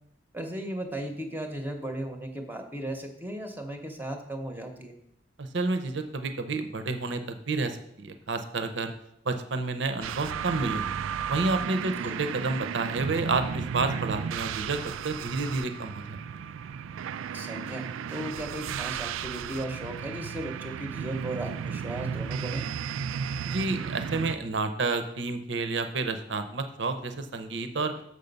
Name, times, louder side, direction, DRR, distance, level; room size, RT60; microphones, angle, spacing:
voice 1, 0.3-4.9 11.9-12.2 17.3-22.7, right 1 dB, 10° right, 4 dB, 0.7 m, -36 dB
voice 2, 5.4-8.9 9.2-11.0 11.3-16.2 23.5-27.9, right 3 dB, 65° right, 9 dB, 0.7 m, -30 dB
sound 1, 10.0-24.4, right 7 dB, 85° right, 0.3 m, -34 dB
6.9 x 6.4 x 5.2 m, 0.76 s
head